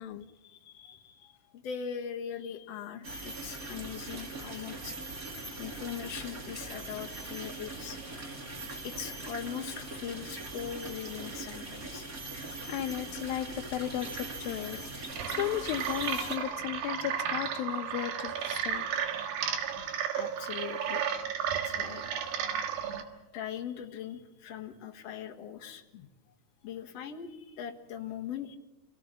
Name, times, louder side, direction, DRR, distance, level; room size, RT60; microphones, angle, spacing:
voice 1, 0.4-5.0 5.6-8.0 8.8-12.1 19.7-21.1 21.6-22.3 23.3-25.8 26.6-28.6, left 8 dB, 55° left, 3 dB, 2.3 m, -41 dB
sound 1, 3.0-16.4, right 2 dB, 25° right, 2.6 m, -41 dB
voice 2, 12.3-18.9 25.9-26.1, left 13 dB, 80° left, 9 dB, 2.7 m, -35 dB
sound 2, 15.1-23.0, right 8 dB, 80° right, 3.4 m, -33 dB
27.5 x 17.5 x 7.5 m, 1.1 s
omnidirectional pair, 4.2 m